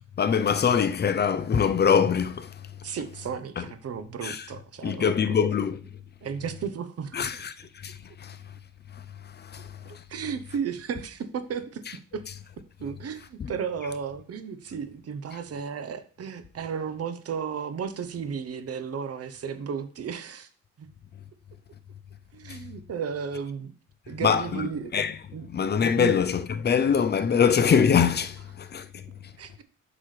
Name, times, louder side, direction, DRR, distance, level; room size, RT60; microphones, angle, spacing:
voice 1, 0.2-2.7 3.6-3.7 4.2-4.5 4.8-5.8 7.1-8.4 8.9-10.0 13.4-13.5 22.5-22.6 24.1-25.2 25.5-29.3, left 7 dB, 35° left, 0.6 m, -24 dB
voice 2, 2.8-5.4 6.2-7.3 9.6-12.2 12.8-20.5 20.8-20.9 22.3-23.7 24.1-24.9 25.3-25.5 26.0-26.1 29.4-29.6, right 7 dB, 55° right, 0.9 m, -34 dB
7.8 x 6.1 x 3.3 m
cardioid pair, 90°, 30 cm